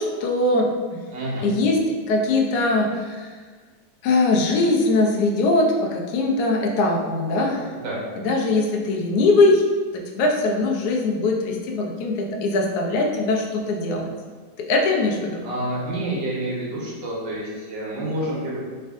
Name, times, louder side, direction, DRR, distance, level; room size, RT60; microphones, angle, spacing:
voice 1, 0.0-1.0 1.4-1.8 2.1-3.3 4.0-7.7 8.2-9.6 10.1-14.1 14.6-15.4, left 2 dB, 70° left, 0 dB, 1.1 m, -21 dB
voice 2, 1.1-1.5 7.7-8.0 15.4-18.7, right 1 dB, 85° right, -5 dB, 1.7 m, -28 dB
3.5 x 3.2 x 3.6 m, 1.5 s
omnidirectional pair, 1.9 m